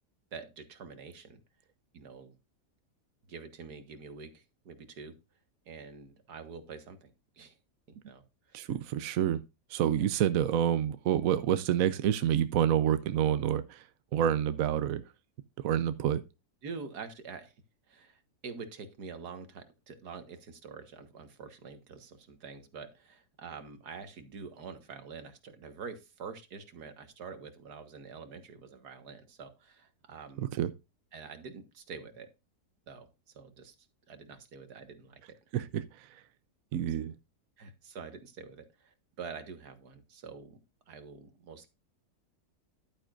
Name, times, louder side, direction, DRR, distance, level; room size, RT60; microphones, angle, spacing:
voice 1, 0.3-1.4 1.9-2.4 3.3-5.2 5.7-7.6 7.9-8.7 10.0-10.1 16.6-17.5 17.9-30.6 31.1-32.3 32.9-33.1 33.3-33.8 34.1-35.4 36.7-36.9 37.6-40.6 40.9-41.7, right 5 dB, 80° right, 2.0 m, -46 dB
voice 2, 8.5-9.4 9.7-13.8 14.1-15.0 15.6-16.2 30.6-30.7 35.5-35.8 36.7-37.1, right 10 dB, 65° right, 1.0 m, -28 dB
11.5 x 9.0 x 2.5 m
omnidirectional pair, 1.7 m